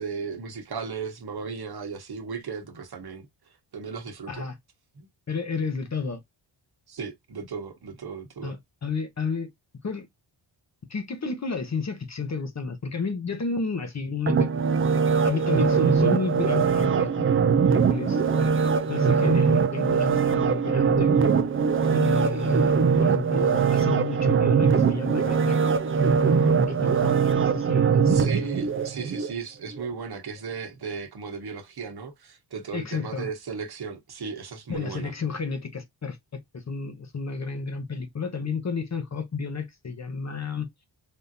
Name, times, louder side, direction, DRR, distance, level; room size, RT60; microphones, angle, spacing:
voice 1, 0.0-3.3 3.7-4.5 4.9-5.1 6.9-8.6 28.0-35.1, right 5 dB, 55° right, 1.0 m, -36 dB
voice 2, 5.3-6.2 8.4-8.6 8.8-9.5 9.8-10.1 10.9-14.5 15.2-17.3 17.9-21.1 21.9-25.6 26.2-28.2 32.7-33.3 34.7-40.8, left 5 dB, 35° left, 0.7 m, -31 dB
sound 1, 14.3-29.3 29.7-29.8, right 6 dB, 30° right, 0.4 m, -22 dB
3.5 x 2.6 x 2.6 m
wide cardioid pair, 125°, 47 cm